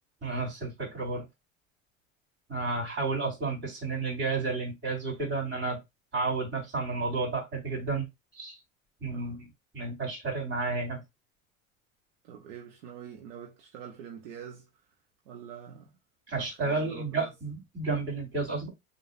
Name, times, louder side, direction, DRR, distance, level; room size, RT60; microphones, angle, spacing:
voice 1, 0.2-1.3 2.5-5.8 6.1-8.0 8.3-8.6 9.0-9.5 9.7-11.0 16.3-18.7, right 3 dB, 30° right, 3.4 m, -31 dB
voice 2, 9.1-9.4 12.2-14.7 15.3-15.9 16.4-17.3, right 8 dB, 65° right, 1.2 m, -45 dB
6.5 x 2.9 x 2.7 m
figure-of-eight pair, 70°, 40 cm